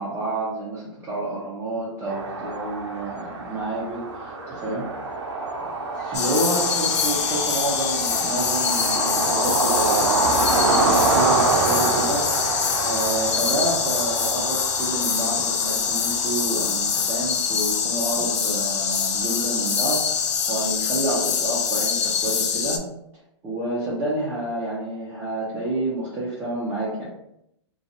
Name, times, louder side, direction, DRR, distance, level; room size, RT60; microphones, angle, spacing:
voice 1, 0.0-4.9 6.1-12.3 12.8-22.8 23.4-27.1, right 2 dB, 15° right, -9 dB, 0.5 m, -29 dB
sound 1, 2.1-20.6, right 3 dB, 65° right, 0.6 m, -26 dB
sound 2, 5.6-13.4, equal, 5° left, 1.1 m, -44 dB
sound 3, 6.1-22.8, left 7 dB, 70° left, 0.4 m, -24 dB
2.7 x 2.2 x 2.6 m, 0.79 s
hypercardioid pair, 150°, 15 cm